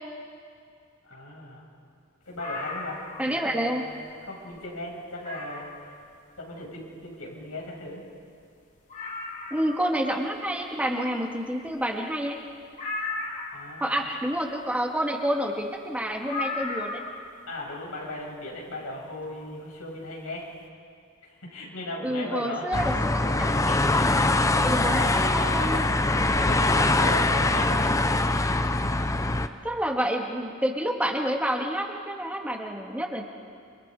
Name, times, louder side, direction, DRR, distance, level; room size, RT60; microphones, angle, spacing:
voice 1, 1.1-1.6 2.3-3.9 4.2-5.7 6.4-8.0 13.5-14.0 17.5-20.5 21.4-22.8 23.7-24.2 24.8-25.9 26.4-27.9, left 1 dB, 85° left, -3 dB, 6.9 m, -36 dB
sound 1, 2.3-3.4 3.9-4.0 4.5-4.6 5.2-5.8 7.6-7.7 7.9-8.0 8.4-8.5 8.9-10.0 12.8-13.7 16.3-17.3 18.6-18.7, left 3 dB, 35° left, 2.9 m, -35 dB
voice 2, 3.2-3.8 9.5-12.4 13.8-17.0 22.0-23.5 24.6-25.9 29.6-33.3, equal, 5° right, 1 dB, 2.1 m, -28 dB
sound 2, 22.7-29.5, left 2 dB, 15° left, 0.7 m, -23 dB
28.5 x 26.5 x 5.0 m, 2.4 s
head